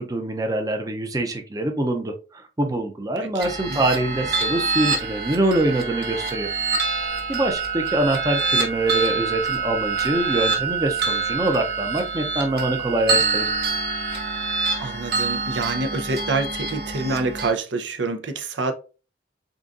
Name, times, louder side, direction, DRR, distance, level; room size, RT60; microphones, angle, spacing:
voice 1, 0.0-6.5 7.3-13.5, right 1 dB, 20° right, 0.5 m, -24 dB
voice 2, 3.2-3.8 14.8-18.7, right 3 dB, 85° right, 0.7 m, -27 dB
sound 1, 3.4-17.5, right 4 dB, 60° right, 1.1 m, -26 dB
3.8 x 3.7 x 2.5 m
head